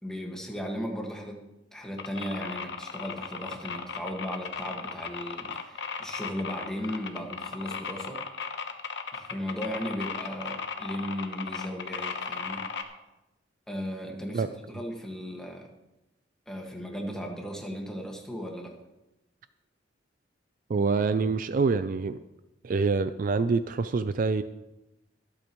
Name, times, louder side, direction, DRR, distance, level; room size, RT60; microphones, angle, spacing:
voice 1, 0.0-1.4 1.7-8.2 9.1-12.7 13.7-15.7 16.5-18.7, equal, 5° left, 0 dB, 1.7 m, -36 dB
sound 1, 2.0-12.8, left 5 dB, 65° left, 1.0 m, -36 dB
voice 2, 20.7-22.2 22.6-24.4, right 4 dB, 45° right, 12 dB, 0.4 m, -26 dB
23.5 x 8.6 x 3.1 m, 0.97 s
head